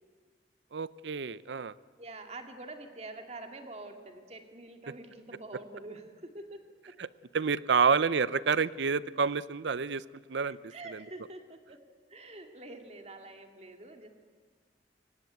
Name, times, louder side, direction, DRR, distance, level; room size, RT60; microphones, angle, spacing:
voice 1, 0.7-1.7 7.0-7.1 7.3-10.6 10.9-11.0, right 5 dB, 80° right, 17 dB, 0.6 m, -28 dB
voice 2, 2.0-7.0 7.8-8.0 10.7-11.8 12.1-14.1, right 2 dB, 35° right, 4 dB, 2.2 m, -46 dB
23.5 x 19.0 x 9.4 m, 1.5 s
head